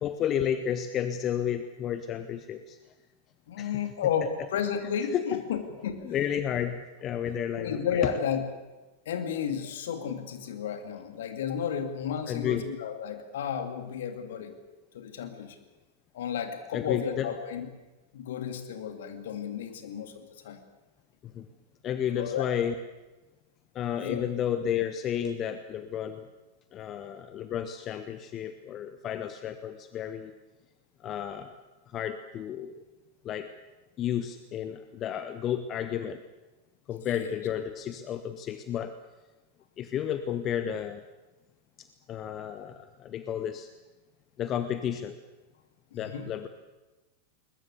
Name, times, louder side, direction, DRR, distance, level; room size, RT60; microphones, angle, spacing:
voice 1, 0.0-2.8 3.6-3.7 5.1-5.4 6.0-8.1 12.3-12.6 16.7-17.3 21.2-21.5 21.8-22.7 23.7-26.3 26.7-30.3 31.0-31.6 31.9-32.8 33.2-33.5 34.0-36.2 36.9-39.0 39.8-41.0 41.8-43.7 44.4-45.2 45.9-46.5, left 9 dB, 30° left, 10 dB, 1.2 m, -32 dB
voice 2, 3.5-6.0 7.6-8.4 9.1-14.6 14.9-15.6 16.1-17.7 18.1-20.6 22.1-22.5 24.0-24.2 37.1-37.3 46.0-46.3, left 8 dB, 60° left, 7 dB, 2.7 m, -32 dB
21.0 x 21.0 x 8.3 m, 1.1 s
figure-of-eight pair, 90°, 0 cm